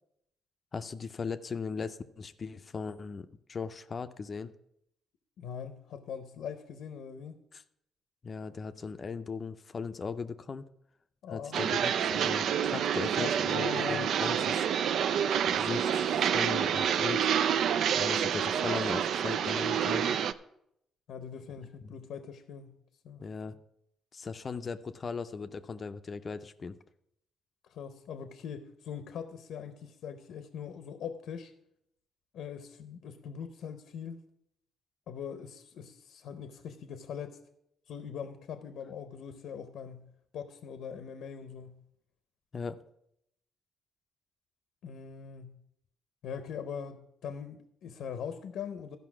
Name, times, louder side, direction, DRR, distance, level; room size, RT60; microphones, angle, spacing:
voice 1, 0.7-4.5 7.5-7.6 8.2-10.7 11.3-14.7 15.5-17.3 18.0-20.2 21.8-22.0 23.2-23.6 24.1-26.8 42.5-42.8, left 5 dB, 40° left, 10 dB, 0.5 m, -38 dB
voice 2, 5.4-7.3 11.2-11.8 13.2-14.1 21.1-22.7 23.0-23.2 27.7-31.5 32.3-34.2 35.1-37.4 37.9-41.8 44.8-45.6 46.2-49.0, left 7 dB, 75° left, 10 dB, 0.7 m, -41 dB
sound 1, 11.5-20.3, right 8 dB, 70° right, 0.4 m, -28 dB
12.5 x 5.3 x 6.0 m, 0.77 s
cardioid pair, 90°, 0 cm